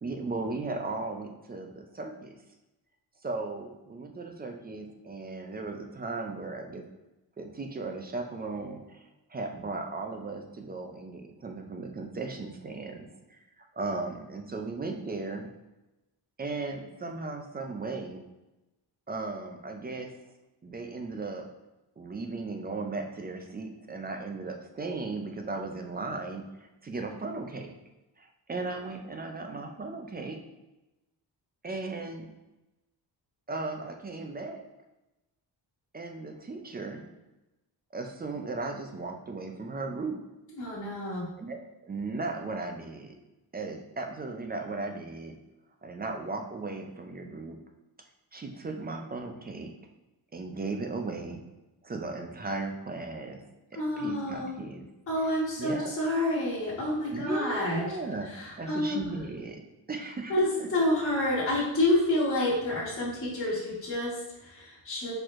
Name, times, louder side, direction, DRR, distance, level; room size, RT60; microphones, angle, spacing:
voice 1, 0.0-2.3 3.2-6.8 7.4-13.4 13.7-15.5 16.4-18.2 19.1-20.2 20.6-21.5 22.0-27.7 28.2-30.4 31.6-32.3 33.5-34.6 35.9-37.0 37.9-40.2 41.4-41.6 41.8-43.1 43.5-45.4 45.8-47.6 48.3-49.7 50.3-51.4 51.8-54.9 55.6-55.9 57.1-58.3 58.6-59.6 59.9-60.7, right 3 dB, 25° right, 3 dB, 0.3 m, -36 dB
voice 2, 40.6-41.3 53.7-54.5 55.1-57.9 58.3-59.0 60.3-65.1, left 1 dB, 30° left, -9 dB, 1.4 m, -28 dB
4.5 x 4.3 x 2.5 m, 1.0 s
wide cardioid pair, 160°, 44 cm